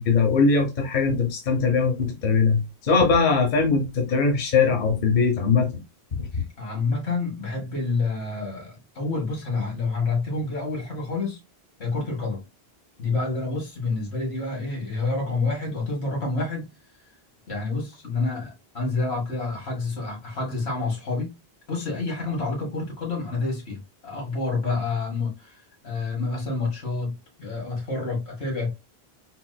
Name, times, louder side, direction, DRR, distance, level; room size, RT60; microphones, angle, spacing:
voice 1, 0.0-5.8 6.1-6.3, left 4 dB, 50° left, 0.9 m, -21 dB
voice 2, 6.3-11.4 11.8-12.4 13.0-16.7 17.5-21.4 21.7-28.7, left 3 dB, 85° left, 1.7 m, -28 dB
4.0 x 2.5 x 2.2 m
omnidirectional pair, 1.1 m